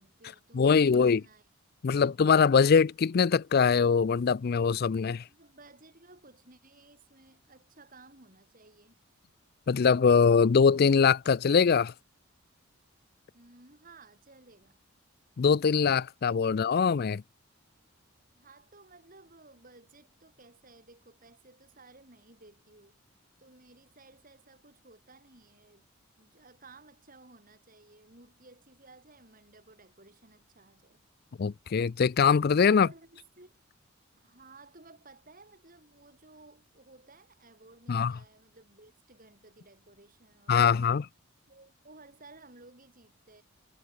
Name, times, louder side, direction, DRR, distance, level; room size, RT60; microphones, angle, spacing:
voice 1, 0.0-1.4 2.5-2.6 5.3-9.0 13.3-14.8 18.3-23.0 23.4-25.9 26.2-31.0 32.7-33.6 34.2-41.1 41.5-43.4, right 3 dB, 40° right, 6.0 m, -56 dB
voice 2, 0.5-1.2 1.8-5.2 9.7-11.9 15.4-17.2 31.4-32.9 37.9-38.1 40.5-41.0, left 6 dB, 50° left, 0.4 m, -23 dB
head